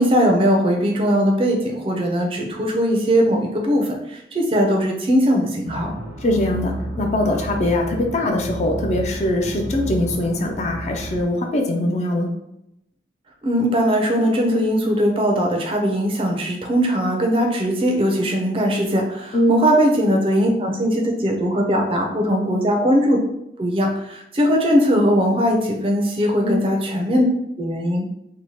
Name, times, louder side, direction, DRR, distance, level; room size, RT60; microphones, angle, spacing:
voice 1, 0.0-5.9 13.4-23.2 23.6-27.2 27.6-28.0, equal, 30° right, 1 dB, 0.4 m, -20 dB
sound 1, 5.6-11.2, right 1 dB, 80° right, 0.8 m, -31 dB
voice 2, 6.2-12.3 19.3-19.6 22.3-22.6 26.4-26.6, left 1 dB, 40° left, 2 dB, 0.3 m, -22 dB
2.7 x 2.1 x 2.9 m, 0.83 s
head